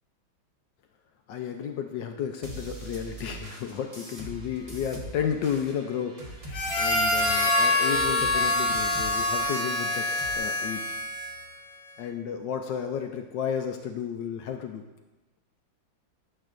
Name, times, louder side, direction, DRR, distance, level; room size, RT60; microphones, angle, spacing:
voice 1, 1.3-6.2 6.8-11.0 12.0-14.8, left 8 dB, 70° left, 5 dB, 1.1 m, -32 dB
sound 1, 2.4-10.4, right 1 dB, 20° right, 1.0 m, -42 dB
Harmonica, 6.5-11.5, left 2 dB, 50° left, 0.8 m, -25 dB
11.5 x 7.2 x 2.5 m, 1.1 s
omnidirectional pair, 2.2 m